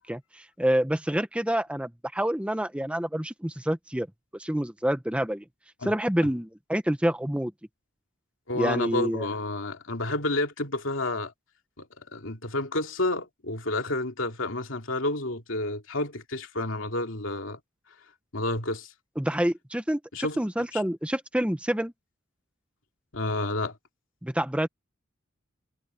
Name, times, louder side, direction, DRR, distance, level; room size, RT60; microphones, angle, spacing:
voice 1, 0.1-4.1 4.3-5.4 5.8-7.5 8.5-9.3 19.2-21.9 24.2-24.7, equal, 5° right, 0.9 m, -27 dB
voice 2, 8.5-11.3 11.8-17.6 18.3-18.9 20.1-20.4 20.7-20.8 23.1-23.8, left 2 dB, 70° left, 2.9 m, -30 dB
head